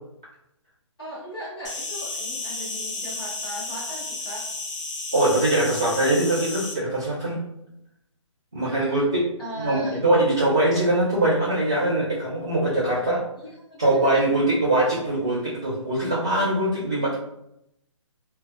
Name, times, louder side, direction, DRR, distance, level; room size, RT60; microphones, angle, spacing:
voice 1, 1.0-4.4 8.6-10.0 13.4-14.3, equal, 45° left, -9 dB, 1.0 m, -38 dB
Insect, 1.6-6.7, left 3 dB, 65° left, 0.6 m, -32 dB
voice 2, 5.1-7.4 8.5-9.2 9.6-13.2 13.8-17.2, right 1 dB, 10° right, -12 dB, 0.3 m, -22 dB
2.2 x 2.2 x 2.5 m, 0.81 s
hypercardioid pair, 175°, 17 cm